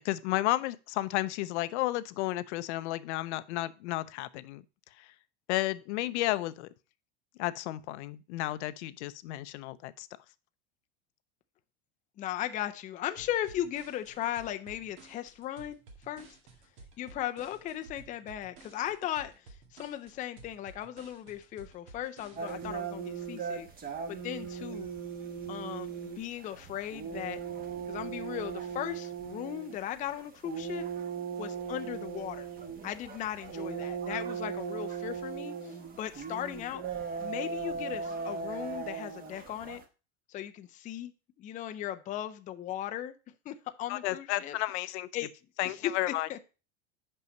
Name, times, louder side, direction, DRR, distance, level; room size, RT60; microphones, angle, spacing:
voice 1, 0.0-4.6 5.0-5.1 5.5-6.7 7.4-10.1 43.9-45.1 45.6-46.3, left 16 dB, 75° left, 0.6 m, -32 dB
voice 2, 12.2-15.8 16.0-16.4 17.0-23.7 24.1-24.9 25.5-27.4 27.9-30.9 31.4-32.5 32.8-36.8 37.2-39.8 40.3-43.1 43.5-44.6 45.1-45.3 45.6-46.4, left 12 dB, 25° left, 0.4 m, -37 dB
sound 1, 13.2-22.8, right 4 dB, 70° right, 2.0 m, -54 dB
sound 2, 22.4-39.8, right 6 dB, 25° right, 1.1 m, -38 dB
5.6 x 5.6 x 5.2 m
supercardioid pair, 140°, 35 cm